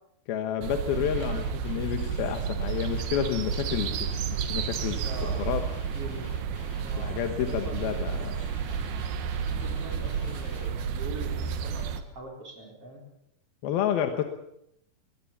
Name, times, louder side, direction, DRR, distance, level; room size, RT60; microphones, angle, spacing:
voice 1, 0.3-4.2 4.5-5.1 5.4-5.7 7.0-8.4 13.6-14.2, left 9 dB, 85° left, 7 dB, 3.2 m, -30 dB
sound 1, 0.6-12.0, right 7 dB, 85° right, 3.2 m, -31 dB
Guitar, 0.9-10.7, left 3 dB, 45° left, 3.0 m, -48 dB
voice 2, 5.0-5.5 5.9-6.3 6.8-8.4 9.6-13.0, right 1 dB, 40° right, 2 dB, 4.8 m, -42 dB
22.5 x 19.0 x 7.3 m, 0.76 s
omnidirectional pair, 4.2 m